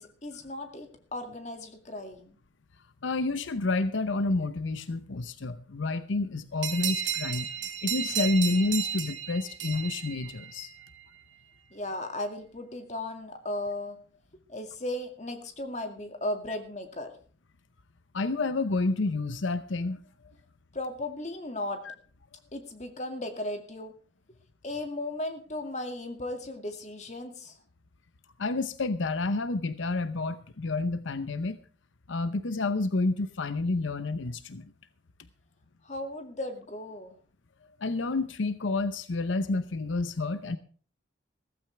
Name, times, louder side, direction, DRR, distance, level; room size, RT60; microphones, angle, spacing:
voice 1, 0.0-2.4 11.7-14.0 14.5-17.1 20.7-21.8 22.5-23.9 24.6-27.6 35.8-37.2, left 1 dB, 35° left, 6 dB, 2.2 m, -36 dB
voice 2, 3.0-10.7 18.1-20.0 21.8-21.9 28.4-31.6 32.1-34.7 37.8-40.6, left 3 dB, 85° left, 13 dB, 0.8 m, -29 dB
sound 1, 6.6-10.9, right 9 dB, 80° right, 2.3 m, -33 dB
15.5 x 14.5 x 3.4 m, 0.42 s
head